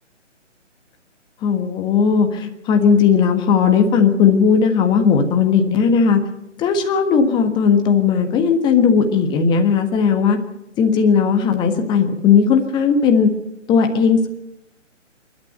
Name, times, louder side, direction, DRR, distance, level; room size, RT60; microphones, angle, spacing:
voice 1, 1.4-6.2 6.6-10.4 10.7-13.3 13.7-14.3, left 6 dB, 10° left, 6 dB, 1.5 m, -16 dB
27.5 x 12.5 x 8.0 m, 0.83 s
figure-of-eight pair, 145°, 38 cm